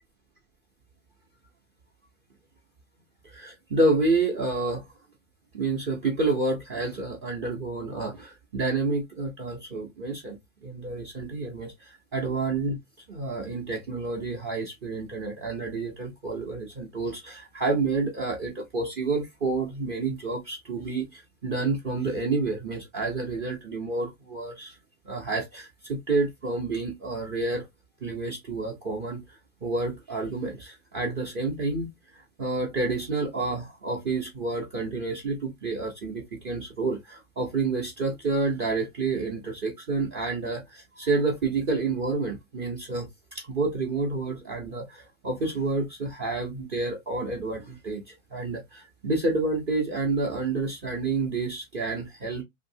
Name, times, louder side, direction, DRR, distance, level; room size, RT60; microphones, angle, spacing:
voice 1, 3.2-4.9 5.5-12.8 13.1-24.7 25.1-27.7 28.0-29.2 29.6-52.4, right 3 dB, 30° right, 0.6 m, -29 dB
2.7 x 2.5 x 2.6 m
supercardioid pair, 150°, 40 cm